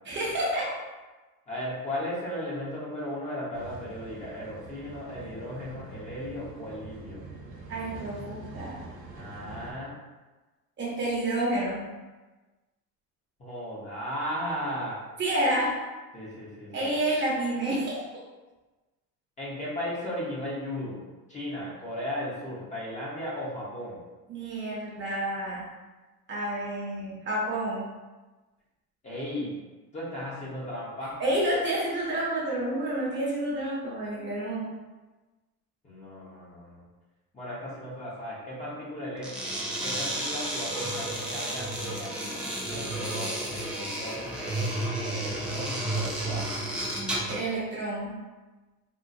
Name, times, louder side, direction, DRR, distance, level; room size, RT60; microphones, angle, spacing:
voice 1, 0.1-0.7 7.7-8.8 10.8-11.9 15.2-15.7 16.7-18.0 24.3-25.7 26.3-27.9 31.2-34.7 47.3-48.1, right 1 dB, 35° right, -5 dB, 0.7 m, -29 dB
voice 2, 1.5-7.2 9.1-10.0 13.4-15.0 16.1-16.9 19.4-21.0 21.3-24.0 29.0-29.6 29.9-31.2 35.8-36.9 37.3-39.3 39.8-42.4 42.7-46.5, left 1 dB, 20° left, -7 dB, 0.7 m, -36 dB
sound 1, 3.5-9.7, right 3 dB, 60° right, 0.9 m, -44 dB
sound 2, 39.2-47.4, right 1 dB, 5° right, 0.4 m, -32 dB
3.7 x 2.4 x 2.6 m, 1.2 s
cardioid pair, 165°, 34 cm